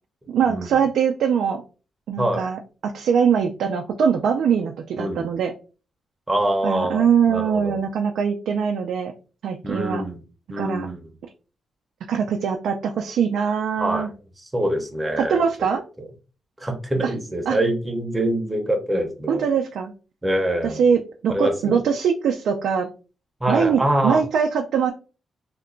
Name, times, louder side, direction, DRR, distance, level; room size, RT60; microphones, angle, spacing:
voice 1, 0.3-1.6 2.1-5.5 6.6-9.1 9.4-10.0 10.6-10.9 12.1-14.1 15.2-15.8 17.0-17.1 17.5-17.6 19.3-19.9 20.6-22.9 23.5-24.9, right 7 dB, 85° right, 3 dB, 0.4 m, -22 dB
voice 2, 2.2-2.5 5.0-5.3 6.3-7.8 9.6-10.2 10.5-11.1 13.8-14.1 14.5-15.4 16.6-19.5 20.2-20.8 21.3-21.8 23.4-24.2, right 1 dB, 10° right, 3 dB, 0.6 m, -24 dB
2.8 x 2.2 x 3.8 m, 0.35 s
wide cardioid pair, 175°, 0 cm